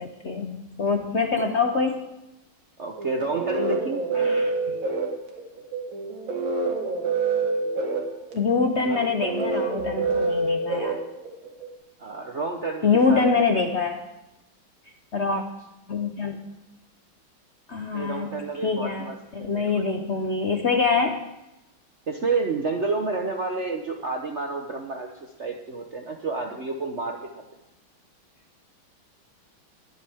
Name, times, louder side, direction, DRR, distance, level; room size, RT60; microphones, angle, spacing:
voice 1, 0.0-2.1 4.1-4.8 8.3-11.0 12.8-14.0 15.1-15.4 15.9-16.4 17.7-18.3 18.6-21.2, left 4 dB, 55° left, 4 dB, 0.8 m, -25 dB
voice 2, 2.8-4.0 8.9-9.0 12.0-13.5 17.9-19.8 22.1-25.1 25.4-27.2, right 3 dB, 45° right, 2 dB, 0.9 m, -30 dB
sound 1, 3.0-11.7, right 3 dB, 65° right, 2.3 m, -27 dB
21.5 x 8.3 x 3.5 m, 0.92 s
omnidirectional pair, 2.2 m